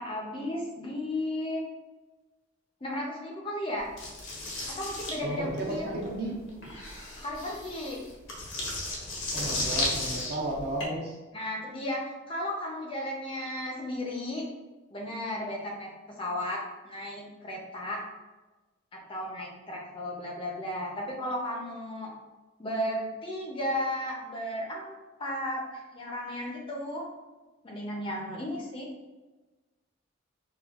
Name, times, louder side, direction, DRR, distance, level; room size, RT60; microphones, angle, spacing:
voice 1, 0.0-1.6 2.8-3.9 4.7-5.9 7.1-8.0 11.3-14.4 14.9-18.0 18.9-22.1 22.6-27.0 27.6-28.9, left 1 dB, 25° left, -1 dB, 0.5 m, -34 dB
sound 1, 4.0-10.8, left 2 dB, 80° left, 0.9 m, -34 dB
voice 2, 5.2-6.4 9.3-11.2, right 1 dB, 50° right, -2 dB, 0.7 m, -33 dB
5.0 x 2.2 x 2.3 m, 1.2 s
head